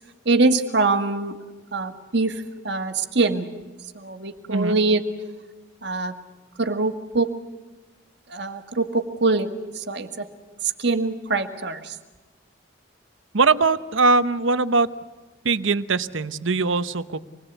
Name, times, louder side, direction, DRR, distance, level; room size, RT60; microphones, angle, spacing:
voice 1, 0.3-1.4 1.7-3.5 4.0-5.0 5.8-6.2 6.6-7.3 8.3-9.5 9.8-10.3 10.8-11.9, right 3 dB, 60° right, 7 dB, 1.7 m, -23 dB
voice 2, 13.3-14.9 15.4-17.2, right 4 dB, 80° right, 13 dB, 0.9 m, -21 dB
26.5 x 21.0 x 8.2 m, 1.2 s
head